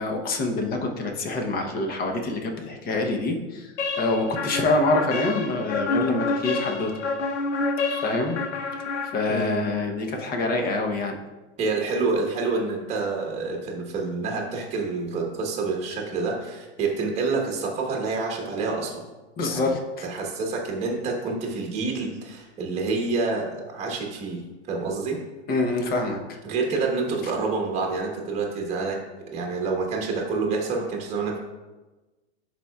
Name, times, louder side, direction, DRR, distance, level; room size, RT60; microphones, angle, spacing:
voice 1, 0.0-6.9 8.0-8.4 9.1-11.2 19.4-20.1 25.5-26.2, left 2 dB, 25° left, 3 dB, 0.8 m, -26 dB
sound 1, 3.8-9.6, left 3 dB, 80° left, 0.9 m, -29 dB
voice 2, 9.3-9.6 11.6-18.9 19.4-19.7 20.0-24.4 24.7-25.2 26.4-29.0 29.3-31.4, right 4 dB, 20° right, 0 dB, 1.1 m, -27 dB
11.0 x 4.3 x 2.3 m, 1.2 s
hypercardioid pair, 130°, 35 cm